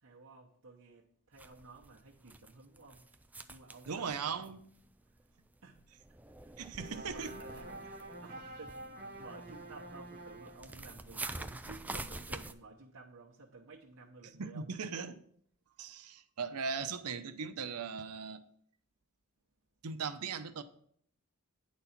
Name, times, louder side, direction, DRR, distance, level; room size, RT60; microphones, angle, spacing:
voice 1, 0.0-3.1 3.5-4.4 5.1-5.2 5.6-5.8 6.4-6.5 7.0-14.7, right 3 dB, 65° right, -4 dB, 1.0 m, -54 dB
sound 1, 1.3-5.2 5.5-12.5, right 2 dB, 5° right, 0.3 m, -47 dB
voice 2, 3.9-4.6 6.6-7.3 14.2-15.2 15.8-18.4 19.8-20.6, right 5 dB, 90° right, 10 dB, 0.7 m, -39 dB
sound 2, 6.7-10.7, right 1 dB, 45° right, 1.3 m, -47 dB
9.7 x 4.2 x 5.8 m, 0.63 s
head